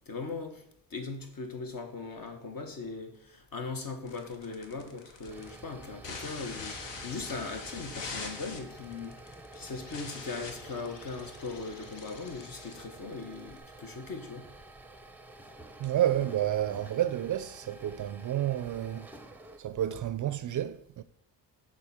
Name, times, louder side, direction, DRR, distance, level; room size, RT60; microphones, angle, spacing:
voice 1, 0.1-0.6 0.9-9.1 9.5-14.5, left 4 dB, 50° left, 1.4 m, -39 dB
sound 1, 4.0-13.6, left 4 dB, 70° left, 1.3 m, -44 dB
sound 2, 5.1-19.6, right 2 dB, 5° right, 0.6 m, -50 dB
voice 2, 15.8-19.1 19.6-21.0, right 11 dB, 45° right, 0.4 m, -30 dB
6.6 x 3.8 x 5.7 m
cardioid pair, 80°, 44 cm